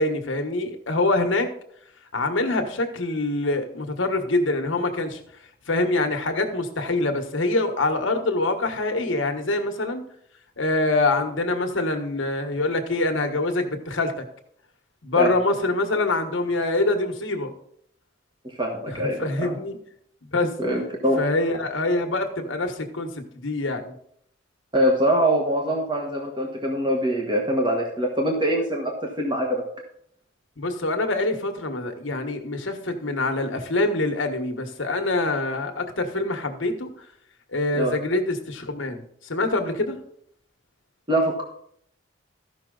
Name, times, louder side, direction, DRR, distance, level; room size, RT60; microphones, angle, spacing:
voice 1, 0.0-1.5 2.1-5.2 5.7-10.1 10.6-14.2 15.0-17.5 18.9-19.8 20.3-20.5 21.2-23.9 30.6-36.9 37.5-40.0, left 2 dB, 85° left, 5 dB, 1.4 m, -25 dB
voice 2, 18.6-19.5 20.6-21.2 24.7-29.6 37.8-37.9 41.1-41.4, equal, 25° right, 0 dB, 1.4 m, -23 dB
14.5 x 5.9 x 3.9 m, 0.69 s
head